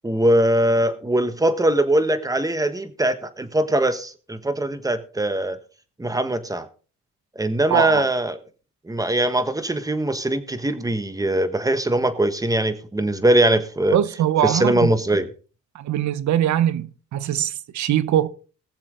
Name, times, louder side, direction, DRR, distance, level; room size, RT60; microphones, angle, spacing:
voice 1, 0.0-5.6 6.0-6.7 7.3-8.4 8.8-14.0 14.4-15.3, right 1 dB, 10° right, 1.5 m, -21 dB
voice 2, 7.7-8.0 13.9-14.9 15.7-18.3, right 11 dB, 70° right, 0.9 m, -22 dB
20.5 x 7.3 x 3.8 m
cardioid pair, 90°, 30 cm